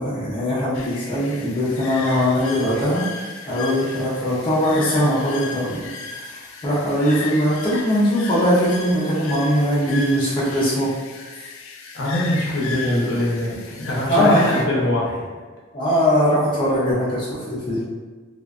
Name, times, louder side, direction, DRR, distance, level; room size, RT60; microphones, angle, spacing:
voice 1, 0.0-3.0 3.5-5.9 6.3-6.4 6.6-10.9 14.1-14.6 15.7-17.9, equal, 25° left, -9 dB, 0.5 m, -20 dB
sound 1, 0.7-14.6, left 4 dB, 80° left, 0.3 m, -35 dB
voice 2, 11.9-15.3, left 1 dB, 60° left, -5 dB, 0.7 m, -23 dB
2.4 x 2.3 x 2.4 m, 1.4 s
head